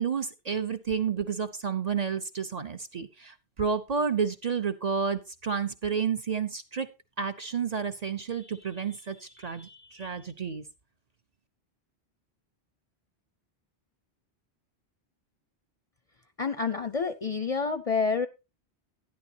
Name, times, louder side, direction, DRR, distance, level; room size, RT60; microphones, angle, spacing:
voice 1, 0.0-6.9 7.2-10.6, right 6 dB, 45° right, 8 dB, 0.7 m, -30 dB
voice 2, 16.4-18.3, left 5 dB, 45° left, 11 dB, 0.5 m, -28 dB
12.0 x 10.5 x 2.8 m, 0.26 s
omnidirectional pair, 1.1 m